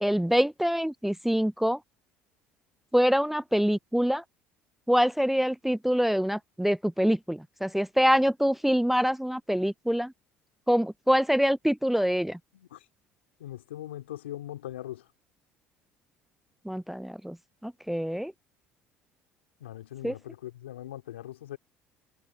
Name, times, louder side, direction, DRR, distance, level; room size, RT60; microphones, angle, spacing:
voice 1, 0.0-1.8 2.9-4.2 4.9-10.1 10.7-12.4 16.7-17.4 17.6-18.3 20.0-20.1, equal, 5° right, 0.4 m, -25 dB
voice 2, 13.4-15.0 19.6-21.6, left 13 dB, 85° left, 2.7 m, -40 dB
hypercardioid pair, 65°, 6 cm